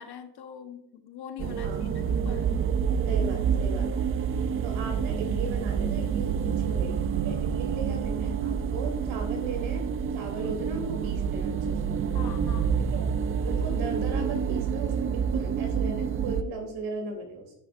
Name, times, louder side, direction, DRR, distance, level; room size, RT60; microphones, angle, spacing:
voice 1, 0.0-2.6 10.3-10.5 12.1-12.7, left 8 dB, 50° left, 7 dB, 1.2 m, -43 dB
sound 1, 1.4-16.4, right 7 dB, 30° right, 0.4 m, -28 dB
voice 2, 1.6-1.9 3.1-4.1 4.6-9.8 10.1-11.9 12.8-13.1 13.4-17.5, right 3 dB, 65° right, 2 dB, 3.3 m, -37 dB
9.7 x 9.4 x 2.6 m, 0.78 s
supercardioid pair, 85°, 49 cm